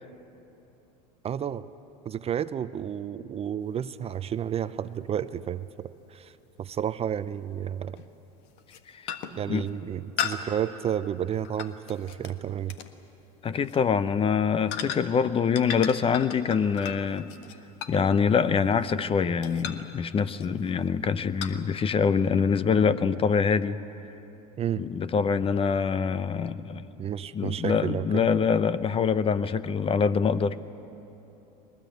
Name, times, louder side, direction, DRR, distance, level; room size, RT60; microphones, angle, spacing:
voice 1, 1.2-1.6 2.0-6.3 6.6-8.0 9.3-12.8 24.6-24.8 27.0-28.3, right 9 dB, 30° right, 14 dB, 0.6 m, -31 dB
sound 1, 4.1-4.2 6.7-6.8 8.0-8.2 8.6-8.8 9.1-9.5 10.2-12.3 12.7-12.9 13.6-13.8 14.7-15.3 15.5-19.1 19.4-19.9 20.4-20.7 21.4-21.5, left 8 dB, 60° left, 1.5 m, -36 dB
voice 2, 13.4-17.3 17.9-23.8 24.8-26.8 27.3-30.6, left 6 dB, 25° left, 15 dB, 0.7 m, -25 dB
22.0 x 19.5 x 9.2 m, 3.0 s
hypercardioid pair, 95°, 21 cm